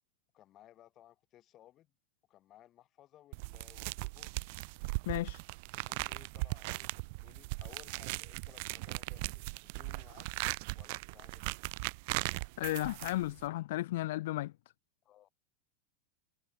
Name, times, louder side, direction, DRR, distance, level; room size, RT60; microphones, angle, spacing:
voice 1, 0.3-1.9 2.3-4.3 5.7-10.3 10.8-11.5 15.0-15.3, left 13 dB, 30° left, 6.0 m, -60 dB
sound 1, 3.3-13.5, right 27 dB, 45° right, 0.4 m, -39 dB
voice 2, 5.1-5.4 12.6-14.5, left 16 dB, 55° left, 0.4 m, -34 dB
figure-of-eight pair, 90°, 0 cm